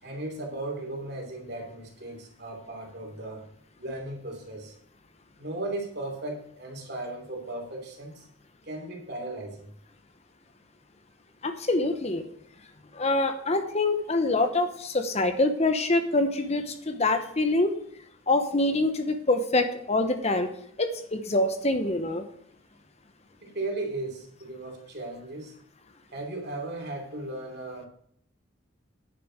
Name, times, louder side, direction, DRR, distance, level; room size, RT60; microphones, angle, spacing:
voice 1, 0.0-3.4 3.8-4.7 5.4-8.3 8.6-9.7 23.4-25.5 26.1-27.9, right 2 dB, 55° right, 1 dB, 2.9 m, -36 dB
voice 2, 11.4-12.2 12.9-17.7 18.3-20.5 20.8-22.2, left 2 dB, 30° left, 8 dB, 0.9 m, -25 dB
10.0 x 6.8 x 6.2 m, 0.67 s
head